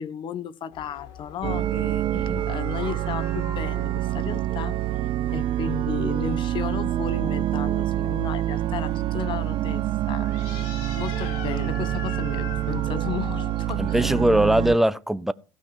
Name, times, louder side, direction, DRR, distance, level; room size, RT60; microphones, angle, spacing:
voice 1, 0.0-4.8 5.3-14.1, left 9 dB, 45° left, 1.2 m, -34 dB
sound 1, 0.7-14.3, left 7 dB, 65° left, 3.8 m, -44 dB
sound 2, 1.4-14.8, right 13 dB, 50° right, 0.7 m, -26 dB
voice 2, 2.1-2.5 13.8-15.3, right 1 dB, 5° right, 0.6 m, -21 dB
15.5 x 6.0 x 5.5 m
hypercardioid pair, 75°, 11 cm